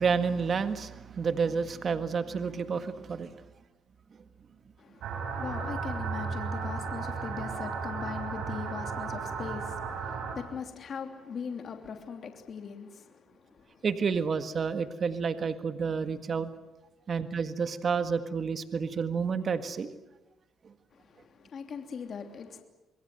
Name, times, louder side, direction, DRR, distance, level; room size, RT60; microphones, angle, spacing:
voice 1, 0.0-3.3 13.8-16.5 17.1-19.9, right 5 dB, 50° right, 1.7 m, -30 dB
voice 2, 4.8-13.8 20.9-22.6, left 6 dB, 55° left, 3.1 m, -40 dB
sound 1, 5.0-10.4, right 5 dB, 80° right, 6.3 m, -34 dB
27.0 x 22.0 x 7.9 m
cardioid pair, 90°, 0 cm